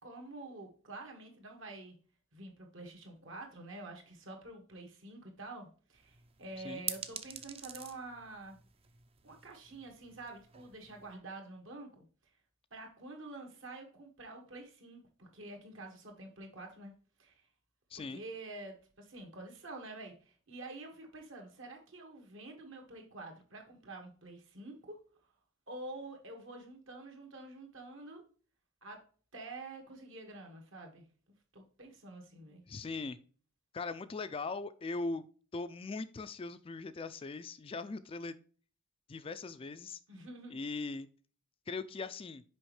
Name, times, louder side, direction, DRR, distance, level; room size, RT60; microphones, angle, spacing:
voice 1, 0.0-2.0 2.3-8.6 9.2-12.1 12.7-16.9 17.2-17.4 18.0-25.0 25.7-28.2 28.8-29.0 29.3-31.1 31.5-32.6 40.1-40.6, right 2 dB, 65° right, 3 dB, 1.7 m, -48 dB
sound 1, 5.9-11.2, right 8 dB, 30° right, 0.5 m, -47 dB
voice 2, 17.9-18.2 32.7-33.2 33.7-35.2 35.5-38.4 39.1-40.0 40.5-41.1 41.7-42.4, left 3 dB, 25° left, 12 dB, 0.3 m, -40 dB
6.3 x 5.1 x 3.1 m, 0.41 s
head